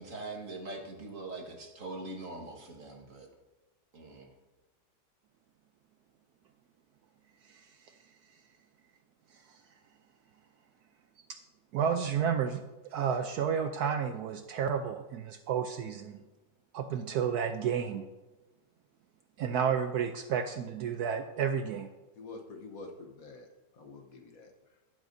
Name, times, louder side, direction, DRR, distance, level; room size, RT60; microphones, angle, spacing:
voice 1, 0.0-3.3 3.9-4.3, right 2 dB, 50° right, 1 dB, 1.8 m, -42 dB
voice 2, 7.5-7.9 9.3-9.6 11.7-12.6 12.9-16.2 16.7-18.0 19.4-21.9, right 7 dB, 70° right, 7 dB, 1.0 m, -31 dB
voice 3, 22.2-23.5 23.7-24.5, left 3 dB, 55° left, 4 dB, 1.4 m, -47 dB
12.0 x 11.0 x 2.6 m, 1.1 s
omnidirectional pair, 1.9 m